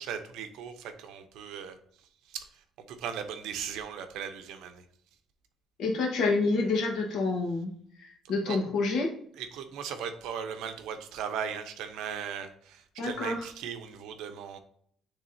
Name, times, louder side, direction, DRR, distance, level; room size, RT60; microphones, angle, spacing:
voice 1, 0.0-1.8 2.3-2.5 2.9-4.8 8.5-8.6 9.4-14.6, right 7 dB, 85° right, 7 dB, 0.8 m, -38 dB
voice 2, 5.8-7.7 8.3-9.1 13.0-13.4, left 3 dB, 60° left, 1 dB, 1.4 m, -27 dB
10.0 x 3.6 x 2.8 m, 0.64 s
cardioid pair, 175°, 0 cm